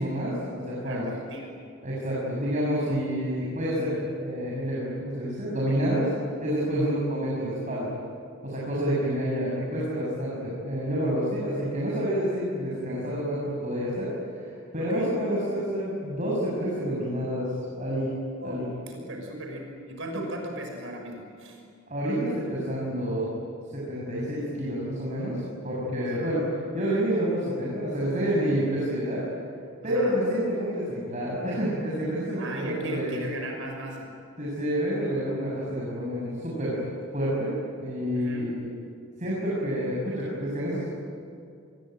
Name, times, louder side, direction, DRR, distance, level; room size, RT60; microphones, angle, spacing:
voice 1, 0.0-1.1 1.8-6.1 6.4-7.9 8.4-17.5 17.8-18.1 18.4-18.7 21.9-23.3 23.7-26.5 26.7-29.3 29.8-33.3 34.4-36.8 37.1-38.7 39.2-40.9, equal, 35° right, -5 dB, 7.0 m, -28 dB
voice 2, 0.8-1.6 6.7-7.0 14.8-15.1 18.4-21.6 26.0-26.3 29.8-30.1 32.3-34.1 38.1-38.5, right 1 dB, 65° right, 2 dB, 6.0 m, -38 dB
28.0 x 22.5 x 9.3 m, 2.4 s
head